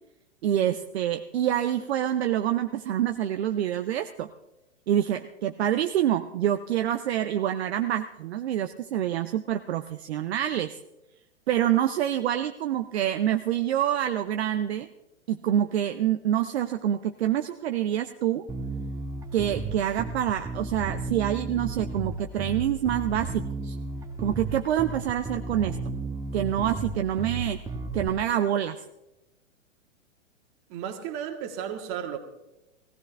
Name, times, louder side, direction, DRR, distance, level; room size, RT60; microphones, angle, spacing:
voice 1, 0.4-4.3 4.9-10.8 11.5-14.9 15.3-18.5 19.3-23.8 24.2-25.8 26.3-27.6 27.9-28.8, right 11 dB, 60° right, 0.8 m, -26 dB
Bass guitar, 18.5-28.1, right 3 dB, 10° right, 1.5 m, -33 dB
voice 2, 30.7-32.2, right 9 dB, 35° right, 1.9 m, -34 dB
17.5 x 16.5 x 3.4 m
hypercardioid pair, 110°, 36 cm